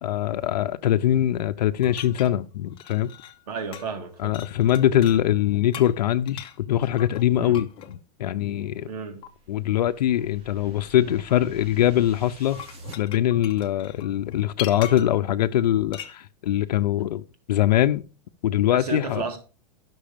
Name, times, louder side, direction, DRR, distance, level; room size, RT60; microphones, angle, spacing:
voice 1, 0.0-3.1 4.2-8.9 9.5-12.6 13.0-17.2 17.5-18.0 18.4-19.2, left 12 dB, 85° left, 0.6 m, -22 dB
sound 1, 1.8-3.5 3.7-4.0 4.3-5.2 5.7-8.0 9.2-9.3 12.3-15.2 15.9-16.2, left 11 dB, 25° left, 0.8 m, -41 dB
voice 2, 3.5-4.4 7.4-7.6 8.8-9.2 18.7-19.4, right 5 dB, 70° right, 1.9 m, -32 dB
sound 2, 9.0-13.0, right 3 dB, 25° right, 1.6 m, -47 dB
11.5 x 6.2 x 5.0 m
supercardioid pair, 150°, 20 cm